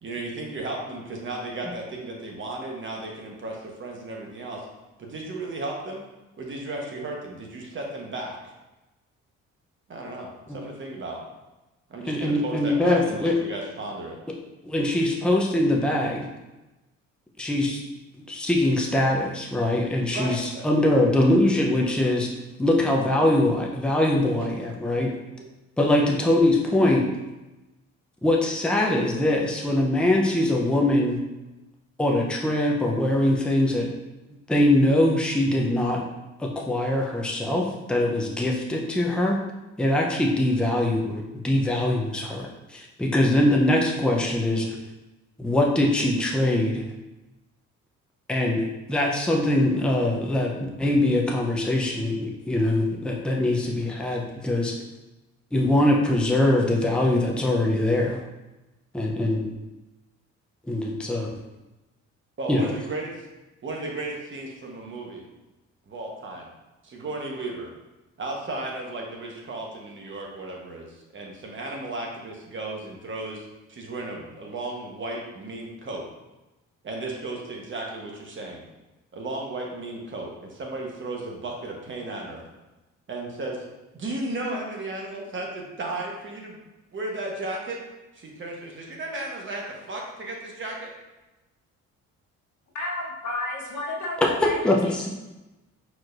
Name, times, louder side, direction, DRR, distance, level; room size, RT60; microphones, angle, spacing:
voice 1, 0.0-4.6 5.0-6.0 6.4-8.4 9.9-11.2 11.9-14.2 20.1-20.6 24.4-24.5 25.0-25.1 62.4-63.2 63.6-65.3 65.9-66.5 66.8-67.7 68.2-76.0 76.8-78.6 79.1-82.4 83.1-83.6 83.9-86.6 86.9-87.8 88.1-90.9, right 2 dB, 40° right, -1 dB, 1.2 m, -34 dB
voice 2, 12.0-13.3 14.6-16.3 17.4-17.8 18.2-22.3 22.6-25.1 25.8-27.1 28.2-31.2 32.0-33.9 34.5-36.0 36.4-39.4 39.8-44.7 45.4-46.8 48.3-50.5 50.8-54.7 55.5-58.2 58.9-59.5 60.7-61.3 62.5-62.6 94.4-95.1, left 1 dB, 5° left, -1 dB, 0.6 m, -22 dB
voice 3, 92.7-95.1, left 2 dB, 75° left, -1 dB, 1.1 m, -32 dB
4.7 x 4.3 x 2.5 m, 1.0 s
cardioid pair, 90°, 30 cm